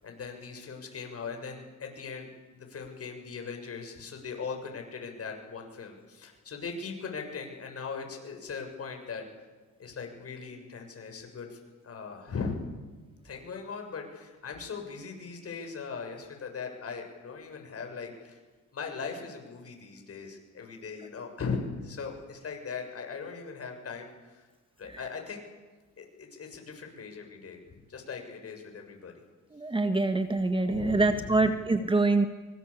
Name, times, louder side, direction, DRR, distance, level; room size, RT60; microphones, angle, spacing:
voice 1, 0.0-9.2 9.8-12.6 13.2-18.4 18.7-24.5 24.8-25.4 26.0-29.1 30.7-31.4, left 5 dB, 45° left, 4 dB, 7.0 m, -39 dB
voice 2, 29.5-32.2, right 2 dB, 15° right, 7 dB, 1.7 m, -25 dB
25.0 x 24.5 x 8.6 m, 1.3 s
cardioid pair, 105°, 32 cm